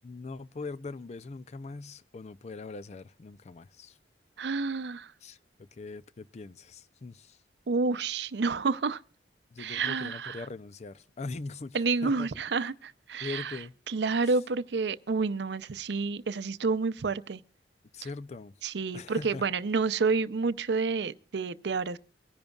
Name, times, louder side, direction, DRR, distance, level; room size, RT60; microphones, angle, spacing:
voice 1, 0.0-4.0 5.2-5.4 5.8-7.4 9.5-11.8 12.0-12.3 13.2-13.7 17.9-18.5 18.9-19.4, left 3 dB, 40° left, 0.4 m, -41 dB
voice 2, 4.4-5.1 7.7-9.0 9.6-10.4 11.7-13.6 13.9-17.4 18.6-22.0, right 4 dB, 75° right, 0.6 m, -29 dB
23.5 x 10.5 x 2.3 m
head